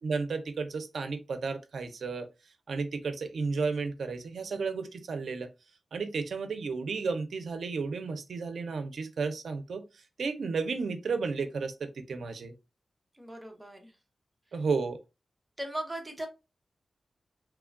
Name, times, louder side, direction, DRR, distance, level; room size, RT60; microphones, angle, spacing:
voice 1, 0.0-2.3 2.7-5.5 5.9-9.8 10.2-12.5 14.5-15.0, right 4 dB, 85° right, 0.4 m, -33 dB
voice 2, 13.1-13.9 15.6-16.3, right 1 dB, 10° right, 0.7 m, -38 dB
3.0 x 2.2 x 2.4 m
wide cardioid pair, 130°, 0 cm